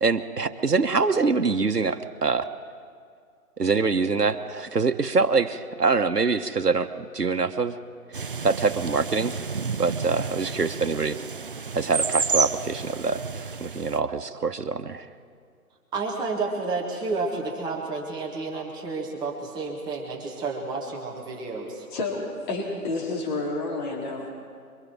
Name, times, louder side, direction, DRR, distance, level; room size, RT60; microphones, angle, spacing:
voice 1, 0.0-2.4 3.6-7.8 8.4-9.4 9.8-11.2 11.7-15.1, right 4 dB, 90° right, 8 dB, 1.2 m, -24 dB
sound 1, 8.1-14.0, right 5 dB, 40° right, 0.5 m, -31 dB
voice 2, 15.9-21.8, right 3 dB, 10° right, -2 dB, 1.7 m, -31 dB
voice 3, 21.9-24.3, left 3 dB, 30° left, -3 dB, 4.3 m, -30 dB
27.5 x 24.0 x 4.7 m, 2.1 s
figure-of-eight pair, 140°, 46 cm